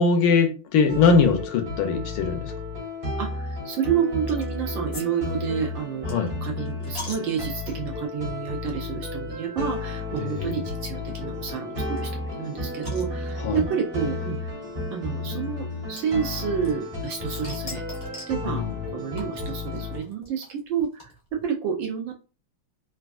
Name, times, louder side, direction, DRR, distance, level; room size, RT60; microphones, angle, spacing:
voice 1, 0.0-2.5 6.1-6.3 10.1-10.6 13.4-13.7 18.4-18.9, left 4 dB, 75° left, 5 dB, 1.4 m, -22 dB
sound 1, 0.9-20.0, left 2 dB, 30° right, 1.0 m, -33 dB
voice 2, 3.2-14.4 14.9-17.8 18.3-18.6 18.9-22.1, right 7 dB, 75° right, 1 dB, 1.2 m, -29 dB
sound 2, 4.3-4.6 4.9-8.0 8.6-8.8 9.0-9.1 10.2-10.3 10.8-10.9 11.2-11.3 11.5-11.6 12.0-13.6 14.5-14.6 16.0-17.0 17.3-18.4 19.2-21.4, left 2 dB, 40° left, 0.5 m, -42 dB
3.9 x 2.3 x 2.4 m, 0.34 s
omnidirectional pair, 2.4 m